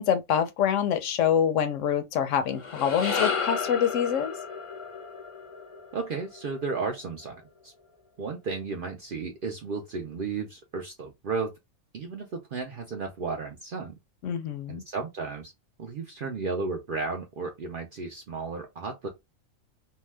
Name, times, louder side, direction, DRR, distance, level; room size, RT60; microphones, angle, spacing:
voice 1, 0.0-4.3 14.2-14.8, left 8 dB, 70° left, 0.9 m, -25 dB
sound 1, 2.4-6.9, left 5 dB, 40° left, 0.5 m, -33 dB
voice 2, 5.9-7.7 8.2-11.5 11.9-13.9 14.7-15.5 15.8-19.1, right 4 dB, 60° right, 0.5 m, -34 dB
2.7 x 2.2 x 3.2 m
omnidirectional pair, 1.4 m